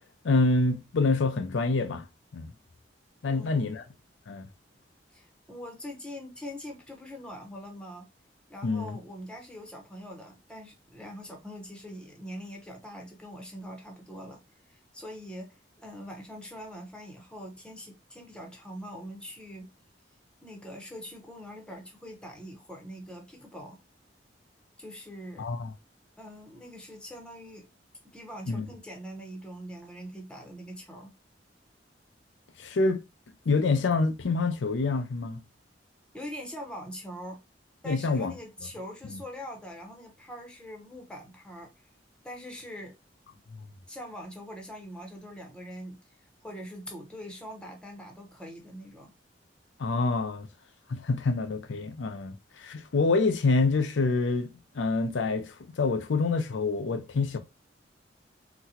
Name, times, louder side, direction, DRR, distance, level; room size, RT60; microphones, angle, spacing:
voice 1, 0.2-2.1 2.3-2.5 3.2-3.8 4.3-4.5 8.6-9.0 25.4-25.7 28.5-28.7 32.6-33.0 33.5-35.4 37.9-38.3 39.0-39.2 43.5-43.6 49.8-50.5 50.9-57.4, left 3 dB, 90° left, 0.5 m, -27 dB
voice 2, 3.3-3.8 5.1-8.1 8.5-14.4 14.7-19.7 20.4-23.8 24.8-25.5 26.2-27.7 28.0-31.1 36.1-37.4 37.8-41.7 42.2-43.0 43.9-46.0 46.4-49.1, equal, 5° left, 0.7 m, -43 dB
4.0 x 2.1 x 2.8 m
head